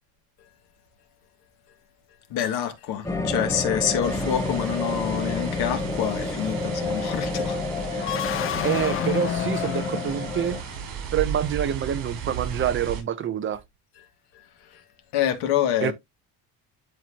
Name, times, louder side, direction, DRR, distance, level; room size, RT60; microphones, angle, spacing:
voice 1, 2.3-8.4 14.0-14.1 14.3-14.8 15.1-15.9, left 10 dB, 85° left, 2.1 m, -27 dB
sound 1, 3.0-10.6, left 2 dB, 10° left, 0.9 m, -29 dB
sound 2, 4.0-13.0, right 7 dB, 60° right, 5.2 m, -36 dB
sound 3, 7.9-10.9, left 10 dB, 35° left, 0.5 m, -30 dB
voice 2, 8.6-10.6 11.1-13.6 15.8-15.9, right 10 dB, 30° right, 0.7 m, -26 dB
12.0 x 4.4 x 2.8 m
cardioid pair, 180°, 37 cm